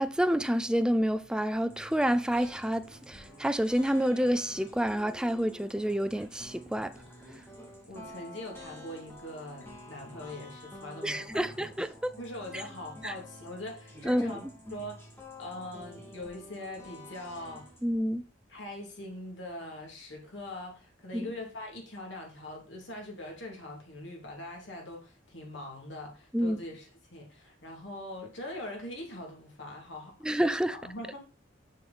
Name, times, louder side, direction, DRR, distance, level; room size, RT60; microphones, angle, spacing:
voice 1, 0.0-6.9 11.0-12.1 13.0-13.1 14.0-14.3 17.8-18.2 21.1-21.3 26.3-26.6 30.2-30.8, equal, 5° right, 0.4 m, -28 dB
sound 1, 1.7-17.8, equal, 10° left, 2.7 m, -49 dB
voice 2, 7.8-11.5 12.2-15.1 15.4-17.7 18.5-30.3 30.8-31.2, left 1 dB, 65° left, 2.8 m, -42 dB
6.7 x 6.5 x 4.2 m
head